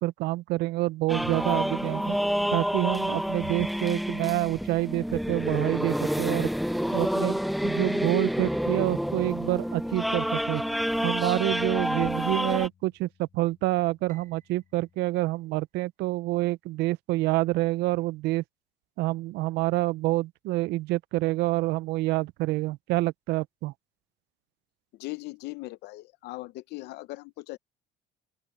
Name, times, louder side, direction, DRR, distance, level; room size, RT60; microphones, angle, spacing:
voice 1, 0.0-2.2 2.5-6.5 6.9-10.6 11.0-18.4 19.0-23.7, right 18 dB, 85° right, 0.5 m, -27 dB
sound 1, 1.1-12.7, equal, ahead, 0.4 m, -28 dB
sound 2, 8.9-15.1, left 8 dB, 45° left, 5.2 m, -57 dB
Piano, 14.1-16.3, right 8 dB, 50° right, 7.3 m, -62 dB
voice 2, 24.9-27.6, left 20 dB, 85° left, 0.7 m, -39 dB
open air
cardioid pair, 110°, 17 cm